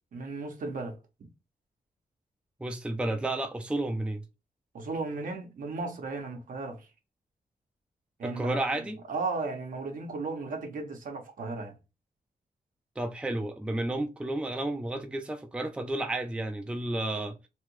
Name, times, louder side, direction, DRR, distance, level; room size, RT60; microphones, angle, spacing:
voice 1, 0.1-1.0 4.7-6.9 8.2-11.8, right 3 dB, 65° right, 1.0 m, -35 dB
voice 2, 2.6-4.2 8.2-9.0 13.0-17.4, right 1 dB, 5° right, 0.5 m, -31 dB
3.1 x 2.3 x 3.1 m
cardioid pair, 90°, 15 cm